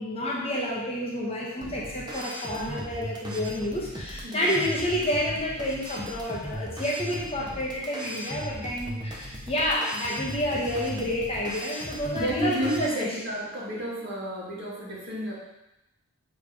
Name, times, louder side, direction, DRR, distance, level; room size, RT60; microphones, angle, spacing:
voice 1, 0.0-13.2, left 1 dB, 25° left, -4 dB, 1.1 m, -29 dB
sound 1, 1.6-12.9, equal, 20° right, 0.7 m, -37 dB
voice 2, 4.2-4.7 12.1-15.3, right 1 dB, 50° right, -5 dB, 1.6 m, -31 dB
7.0 x 3.3 x 4.8 m, 0.92 s
head